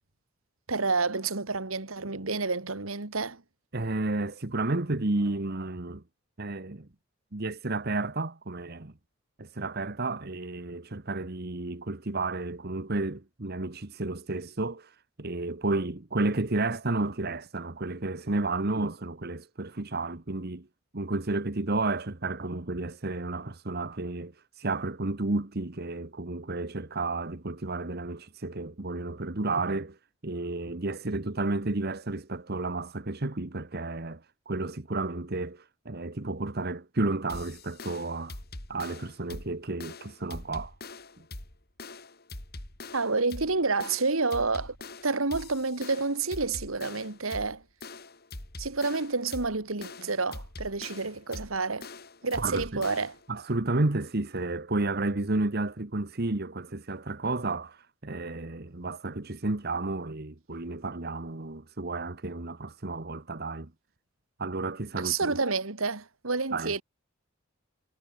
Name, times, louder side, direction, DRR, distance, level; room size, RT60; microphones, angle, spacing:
voice 1, 0.7-3.4 42.9-44.8 45.0-47.6 48.6-51.9 52.2-53.2 65.0-66.8, right 4 dB, 85° right, 2.2 m, -29 dB
voice 2, 3.7-6.0 6.4-6.9 7.3-8.9 9.4-14.9 15.2-20.7 20.9-24.3 24.6-30.0 30.2-34.2 34.5-38.4 38.7-40.7 52.3-52.8 53.3-63.7 64.4-65.3 66.5-66.7, right 2 dB, 50° right, 1.4 m, -32 dB
sound 1, 37.3-53.3, left 2 dB, 50° left, 4.0 m, -43 dB
head